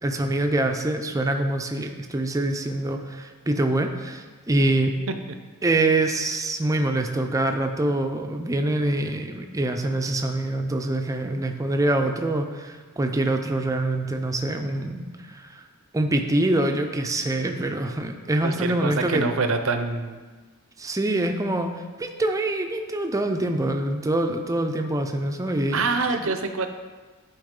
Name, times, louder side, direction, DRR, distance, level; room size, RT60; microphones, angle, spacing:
voice 1, 0.0-5.0 5.6-15.6 15.9-19.3 20.8-21.7 22.0-25.8 26.2-26.3, right 1 dB, 15° right, 5 dB, 0.5 m, -25 dB
voice 2, 18.4-20.2 25.7-26.7, right 4 dB, 65° right, 8 dB, 0.6 m, -26 dB
11.0 x 4.6 x 3.7 m, 1.4 s
head